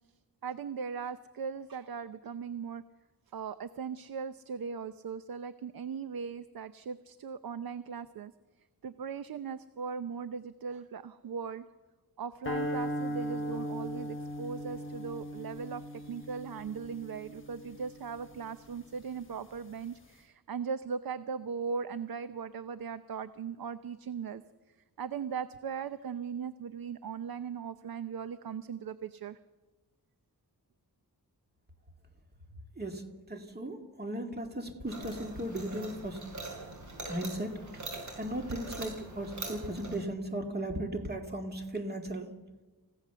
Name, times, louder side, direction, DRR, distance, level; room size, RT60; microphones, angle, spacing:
voice 1, 0.4-2.8 3.3-8.3 8.8-11.6 12.2-24.4 25.0-29.4, right 6 dB, 70° right, 12 dB, 0.7 m, -39 dB
sound 1, 12.4-18.8, equal, 35° left, 1.4 m, -38 dB
voice 2, 32.8-36.2 37.1-37.6 38.2-42.3, right 1 dB, 25° right, 4 dB, 2.1 m, -36 dB
sound 2, 34.9-40.0, right 2 dB, 50° right, 6.2 m, -43 dB
28.5 x 16.5 x 6.9 m, 1.2 s
wide cardioid pair, 170°, 37 cm